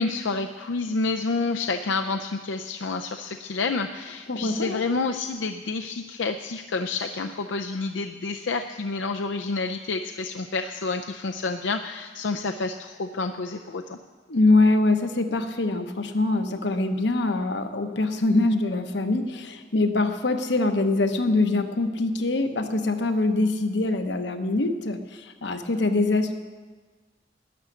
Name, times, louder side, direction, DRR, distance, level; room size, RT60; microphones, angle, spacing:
voice 1, 0.0-14.0, left 3 dB, 90° left, 6 dB, 0.5 m, -29 dB
voice 2, 4.3-4.8 14.3-26.3, left 2 dB, 75° left, 8 dB, 1.0 m, -23 dB
12.0 x 7.0 x 10.0 m, 1.4 s
head